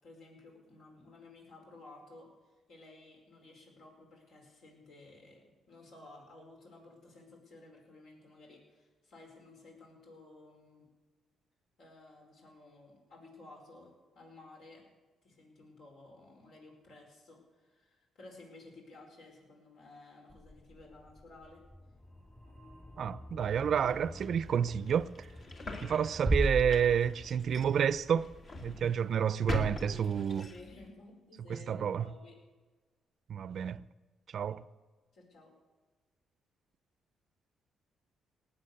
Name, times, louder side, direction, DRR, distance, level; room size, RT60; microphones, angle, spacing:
voice 1, 0.0-10.9 11.8-14.9 15.2-21.6 29.9-32.4 35.1-35.5, left 2 dB, 70° left, 4.8 m, -55 dB
sound 1, 20.3-28.1, left 1 dB, 20° left, 2.6 m, -51 dB
voice 2, 23.0-25.3 25.8-28.3 28.6-30.5 31.5-32.1 33.3-33.8 34.3-34.6, right 8 dB, 60° right, 0.5 m, -30 dB
sound 2, 23.4-30.9, left 2 dB, 45° left, 2.2 m, -44 dB
Bass drum, 26.3-27.7, right 1 dB, ahead, 1.0 m, -31 dB
19.0 x 8.1 x 6.8 m
cardioid pair, 90°, 0 cm